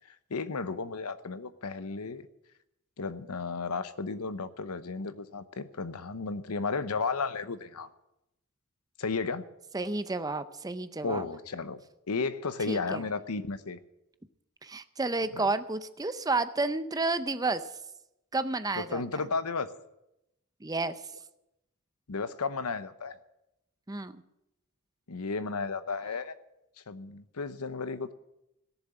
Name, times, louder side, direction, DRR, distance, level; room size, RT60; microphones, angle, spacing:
voice 1, 0.0-2.2 3.0-7.9 9.0-9.4 11.0-11.8 12.1-13.8 15.3-15.4 18.8-19.7 22.1-23.1 25.1-26.3 26.9-28.1, left 4 dB, 85° left, 13 dB, 0.9 m, -33 dB
voice 2, 9.7-11.3 12.7-13.1 14.6-17.6 18.3-19.2 20.6-21.0 23.9-24.2, right 3 dB, 15° right, 12 dB, 0.5 m, -31 dB
17.0 x 7.1 x 9.0 m, 0.87 s
head